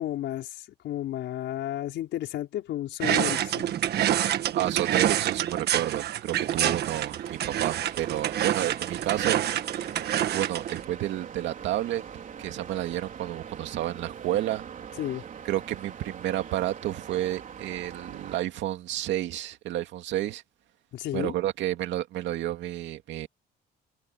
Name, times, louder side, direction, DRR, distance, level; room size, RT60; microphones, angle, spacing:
voice 1, 0.0-3.7 6.6-6.8 15.0-15.2 20.9-21.3, left 13 dB, 75° left, 5.2 m, -32 dB
sound 1, 3.0-10.8, right 11 dB, 65° right, 1.5 m, -27 dB
voice 2, 4.5-9.4 10.3-12.0 12.4-14.7 15.5-20.4 21.1-23.3, right 13 dB, 85° right, 2.3 m, -30 dB
sound 2, 6.5-18.4, right 8 dB, 45° right, 4.1 m, -42 dB
cardioid pair, 135°, 19 cm